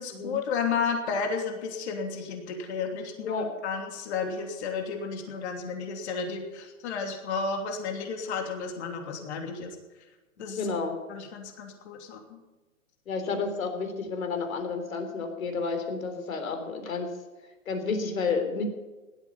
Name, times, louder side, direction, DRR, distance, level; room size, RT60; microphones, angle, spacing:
voice 1, 0.0-9.8 10.4-10.6 11.1-12.4, left 5 dB, 50° left, 3 dB, 3.0 m, -32 dB
voice 2, 10.6-11.0 13.1-17.1 17.7-18.6, left 4 dB, 70° left, 6 dB, 3.8 m, -30 dB
17.0 x 13.0 x 5.6 m, 1.2 s
hypercardioid pair, 145°, 42 cm